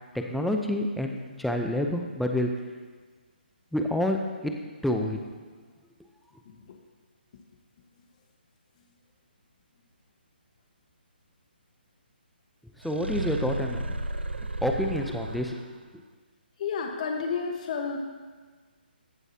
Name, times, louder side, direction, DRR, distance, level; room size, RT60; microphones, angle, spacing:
voice 1, 0.1-2.5 3.7-4.2 4.4-4.5 4.8-5.2 12.8-14.0 14.6-15.6, left 1 dB, ahead, 3 dB, 0.6 m, -28 dB
sound 1, 12.8-15.8, right 2 dB, 90° right, 0.6 m, -33 dB
voice 2, 16.6-18.0, left 5 dB, 45° left, 2 dB, 1.3 m, -30 dB
15.0 x 8.0 x 2.9 m, 1.5 s
figure-of-eight pair, 145°, 6 cm